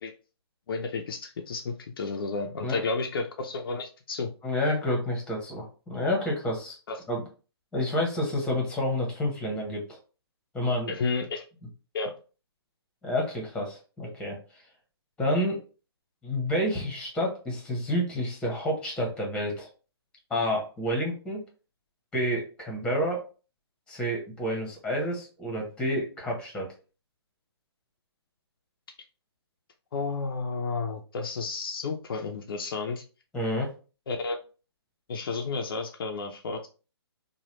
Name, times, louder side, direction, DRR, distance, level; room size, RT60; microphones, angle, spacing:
voice 1, 0.7-4.3 6.9-7.0 10.9-11.4 11.9-12.1 29.9-33.0 34.1-34.4 35.1-36.7, left 4 dB, 60° left, 3 dB, 0.5 m, -32 dB
voice 2, 4.4-6.8 7.1-7.2 7.7-9.8 10.5-10.9 13.0-14.4 15.2-15.6 16.2-19.7 20.3-21.4 22.1-23.2 23.9-26.7 33.3-33.7, equal, 5° left, -1 dB, 1.0 m, -29 dB
3.0 x 2.2 x 3.0 m, 0.35 s
hypercardioid pair, 140°, 14 cm